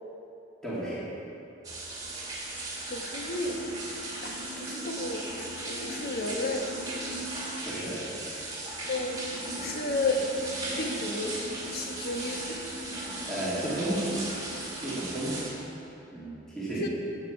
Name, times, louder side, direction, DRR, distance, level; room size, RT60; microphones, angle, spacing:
voice 1, 0.6-1.1 7.6-8.0 13.2-14.2 14.7-15.5 16.1-16.9, right 1 dB, 5° left, -10 dB, 2.5 m, -33 dB
sound 1, 1.6-15.5, right 2 dB, 20° right, 2.4 m, -37 dB
voice 2, 2.9-3.6 4.2-6.7 8.9-9.2 9.6-10.3 10.8-11.4 11.7-12.6 16.7-16.9, left 2 dB, 55° left, 2 dB, 1.2 m, -32 dB
9.4 x 8.5 x 7.2 m, 2.9 s
head